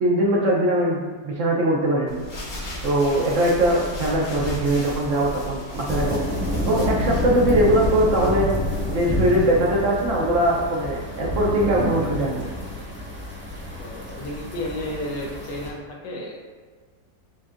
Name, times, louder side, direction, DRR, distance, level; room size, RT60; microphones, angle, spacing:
voice 1, 0.0-2.2 2.8-6.2 6.6-8.5 8.9-12.4, right 1 dB, 65° right, -3 dB, 0.7 m, -21 dB
sound 1, 2.1-9.6, left 1 dB, 45° left, 1.0 m, -34 dB
sound 2, 5.9-15.7, left 1 dB, 10° right, 0.6 m, -29 dB
voice 2, 13.8-16.4, left 1 dB, 80° left, -1 dB, 1.5 m, -32 dB
7.3 x 2.6 x 2.5 m, 1.5 s
omnidirectional pair, 1.9 m